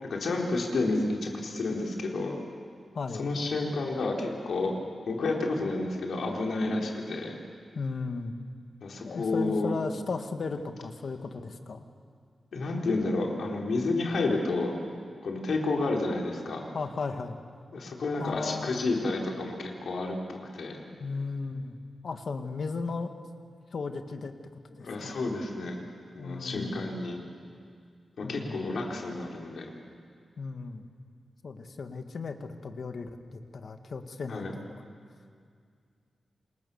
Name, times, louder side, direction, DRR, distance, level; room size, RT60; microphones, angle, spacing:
voice 1, 0.0-2.3 3.2-4.7 5.1-7.3 8.8-9.7 12.5-14.7 15.2-16.6 17.7-20.8 24.8-25.7 26.1-27.2 28.2-29.7 34.3-34.5, left 2 dB, 75° left, 0 dB, 4.4 m, -30 dB
voice 2, 2.9-3.3 7.8-8.3 9.0-11.8 16.7-17.4 18.2-18.8 20.9-21.8 22.0-23.1 23.7-24.3 24.8-25.2 26.2-26.9 28.2-28.7 30.4-30.9 31.4-34.7, left 4 dB, 60° left, 7 dB, 1.9 m, -36 dB
29.0 x 27.0 x 7.2 m, 2.2 s
wide cardioid pair, 125°, 0 cm